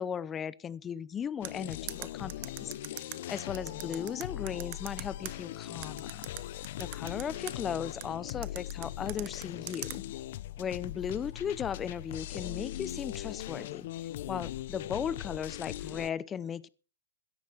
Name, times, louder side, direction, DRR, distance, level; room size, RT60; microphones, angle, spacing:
voice 1, 0.0-6.3 6.8-10.0 10.6-13.9 14.3-16.7, left 8 dB, 15° left, 20 dB, 0.7 m, -37 dB
sound 1, 1.4-16.1, left 14 dB, 55° left, 0.6 m, -40 dB
sound 2, 1.4-5.3 5.8-7.5 8.0-10.0, right 20 dB, 45° right, 1.3 m, -41 dB
16.5 x 13.0 x 4.6 m, 0.37 s
hypercardioid pair, 150°, 0 cm